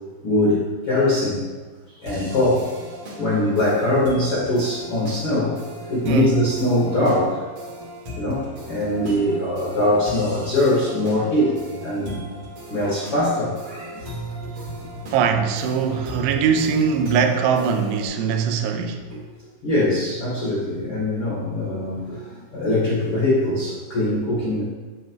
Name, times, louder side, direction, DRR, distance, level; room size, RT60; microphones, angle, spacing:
voice 1, 0.2-1.4 2.0-2.7 3.2-5.6 5.9-7.4 8.1-12.2 12.7-14.1 19.1-19.2 19.6-24.6, left 1 dB, 85° left, 1.2 m, -22 dB
sound 1, 2.1-18.1, right 1 dB, 60° right, 1.6 m, -37 dB
voice 2, 15.1-19.1, right 6 dB, 80° right, 2.6 m, -21 dB
9.9 x 8.6 x 3.0 m
omnidirectional pair, 5.5 m